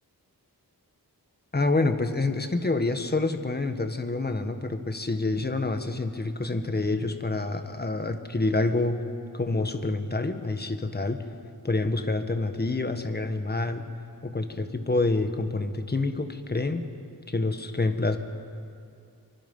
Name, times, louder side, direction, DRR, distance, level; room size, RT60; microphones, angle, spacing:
voice 1, 1.5-9.0 9.3-11.2 11.6-13.9 14.2-16.8 17.3-18.2, left 2 dB, 25° left, 7 dB, 1.6 m, -27 dB
27.5 x 23.5 x 5.6 m, 2.4 s
wide cardioid pair, 80°, 36 cm